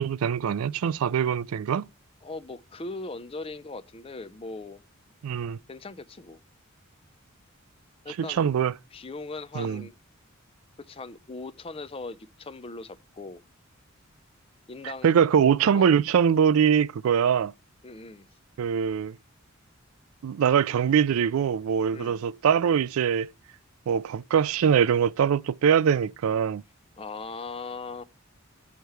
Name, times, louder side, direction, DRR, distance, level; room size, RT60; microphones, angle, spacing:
voice 1, 0.0-1.9 5.2-5.6 8.2-8.7 9.5-9.9 15.0-17.5 18.6-19.2 20.2-23.3 23.9-26.6, right 7 dB, 80° right, 0.3 m, -23 dB
voice 2, 2.2-4.8 5.7-6.4 8.0-8.5 8.9-10.0 10.8-13.4 14.7-15.2 15.7-15.9 17.8-18.3 21.9-22.2 27.0-28.0, left 3 dB, 25° left, 0.5 m, -39 dB
6.5 x 4.5 x 6.7 m
head